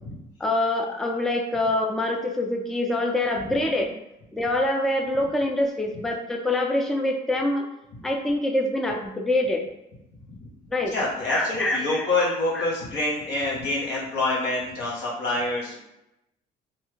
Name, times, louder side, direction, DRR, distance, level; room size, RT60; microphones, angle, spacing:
voice 1, 0.4-4.0 4.3-7.7 8.0-9.6 10.7-11.0 11.3-12.3 12.5-12.7, left 1 dB, ahead, 2 dB, 0.3 m, -25 dB
voice 2, 10.9-15.8, left 2 dB, 85° left, -4 dB, 1.1 m, -26 dB
2.8 x 2.3 x 3.2 m, 0.89 s
cardioid pair, 110°, 17 cm